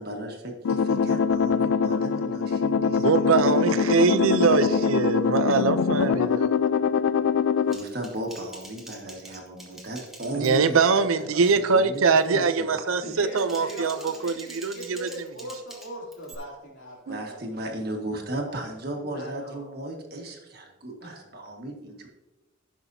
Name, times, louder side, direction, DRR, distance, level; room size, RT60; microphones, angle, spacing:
voice 1, 0.0-5.0 7.7-10.8 11.2-12.7 17.1-22.1, right 1 dB, 50° right, 1.6 m, -36 dB
sound 1, 0.6-7.8, left 6 dB, 85° left, 0.4 m, -23 dB
voice 2, 3.0-6.5 10.4-15.1 17.1-17.2, right 4 dB, 85° right, 0.6 m, -23 dB
Typing, 7.7-10.9 11.2-11.6 11.9-12.3 13.1-16.3, right 1 dB, ahead, 1.2 m, -46 dB
voice 3, 10.9-11.4 11.7-11.8 13.0-17.4 18.4-19.7 21.0-21.4, right 1 dB, 65° left, 2.8 m, -40 dB
16.0 x 6.1 x 2.7 m
head